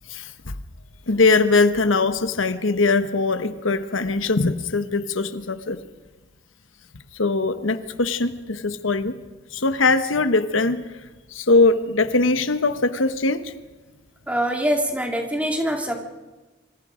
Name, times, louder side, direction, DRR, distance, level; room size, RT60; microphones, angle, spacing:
voice 1, 0.1-0.6 1.1-5.8 7.2-9.2 9.5-10.8 11.3-13.5, left 3 dB, 85° left, 10 dB, 1.2 m, -21 dB
voice 2, 14.3-16.0, equal, 5° right, 2 dB, 2.3 m, -24 dB
26.5 x 25.5 x 5.1 m, 1.2 s
head